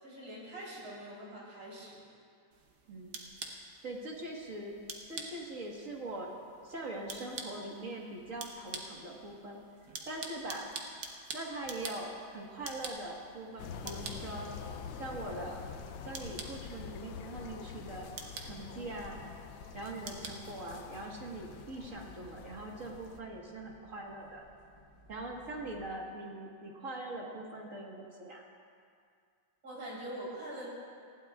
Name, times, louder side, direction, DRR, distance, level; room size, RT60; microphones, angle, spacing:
voice 1, 0.0-2.0 29.6-30.7, right 1 dB, 85° right, -7 dB, 4.5 m, -43 dB
sound 1, 2.5-21.3, right 4 dB, 60° right, 1.5 m, -48 dB
voice 2, 2.9-3.2 3.5-4.8 5.1-6.3 6.6-9.6 10.1-10.7 11.3-14.5 15.0-15.6 16.0-18.1 18.4-19.2 19.7-24.4 25.1-28.4, right 2 dB, 45° right, -1 dB, 1.8 m, -42 dB
sound 2, 13.6-23.2, left 7 dB, 85° left, 1.4 m, -46 dB
sound 3, 20.9-25.9, equal, 20° left, 2.4 m, -60 dB
20.0 x 15.5 x 2.4 m, 2.2 s
omnidirectional pair, 2.1 m